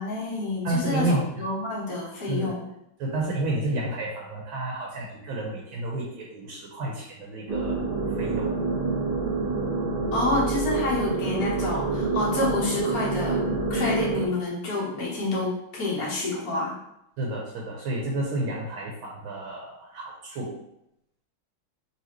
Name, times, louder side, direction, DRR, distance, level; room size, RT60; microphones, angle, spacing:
voice 1, 0.0-2.6 10.1-13.4 13.7-16.7, left 2 dB, 50° left, -5 dB, 1.5 m, -28 dB
voice 2, 0.6-1.3 2.3-2.5 3.0-7.8 8.2-8.5 17.2-20.6, right 2 dB, 75° right, -2 dB, 1.6 m, -30 dB
sound 1, 7.5-14.3, right 3 dB, 55° right, 0.5 m, -27 dB
4.1 x 3.4 x 3.0 m, 0.81 s
omnidirectional pair, 2.3 m